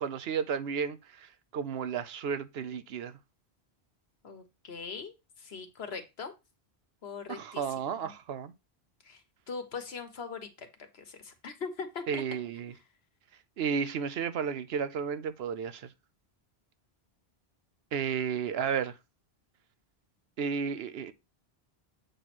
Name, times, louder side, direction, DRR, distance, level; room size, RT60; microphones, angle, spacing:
voice 1, 0.0-3.1 7.3-8.5 12.1-12.7 13.6-15.9 17.9-19.0 20.4-21.1, right 7 dB, 70° right, 0.9 m, -33 dB
voice 2, 4.2-6.3 7.0-7.7 8.0-8.1 9.0-9.2 9.5-10.7 10.9-12.2, left 5 dB, 75° left, 1.4 m, -41 dB
7.8 x 3.1 x 6.0 m
omnidirectional pair, 1.1 m